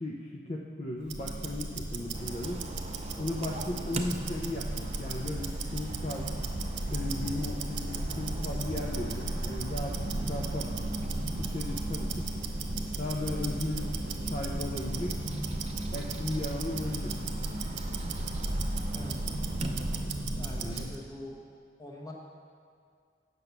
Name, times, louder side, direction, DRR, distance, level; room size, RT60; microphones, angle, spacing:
voice 1, 0.0-2.6 3.2-6.3 6.9-10.0 10.3-10.7 11.4-12.3 13.0-14.0 14.3-15.2 15.9-17.2 20.6-20.9, left 2 dB, 40° left, -2 dB, 0.6 m, -36 dB
Tick-tock, 1.0-21.0, right 2 dB, 70° right, 0.8 m, -35 dB
sound 1, 2.1-20.0, right 2 dB, 35° right, 0.6 m, -43 dB
voice 2, 20.4-21.3 21.8-22.1, left 1 dB, 20° left, -2 dB, 1.1 m, -44 dB
8.3 x 6.8 x 5.9 m, 2.2 s
head